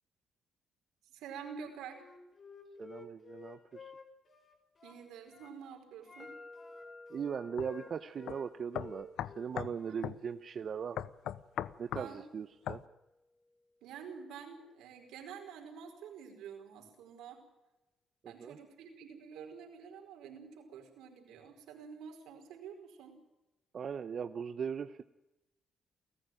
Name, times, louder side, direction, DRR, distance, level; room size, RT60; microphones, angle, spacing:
voice 1, 1.0-2.0 4.8-6.3 9.9-10.0 11.9-12.2 13.8-17.4 18.2-23.2, right 7 dB, 90° right, 4 dB, 4.9 m, -48 dB
Wind instrument woodwind instrument, 1.9-5.6 6.0-8.5 8.7-10.1, left 4 dB, 40° left, 4.8 m, -53 dB
voice 2, 2.8-3.9 7.1-9.1 9.4-11.1 11.8-12.8 18.2-18.6 23.7-25.0, right 7 dB, 50° right, 10 dB, 0.9 m, -39 dB
sound 1, 6.2-14.1, left 2 dB, 20° left, 1.9 m, -57 dB
sound 2, 7.6-7.7 8.3-8.4 8.7-9.8 10.0-10.2 11.0-12.1 12.7-12.8, left 11 dB, 80° left, 0.8 m, -38 dB
29.0 x 14.5 x 9.2 m, 0.97 s
cardioid pair, 90°, 0 cm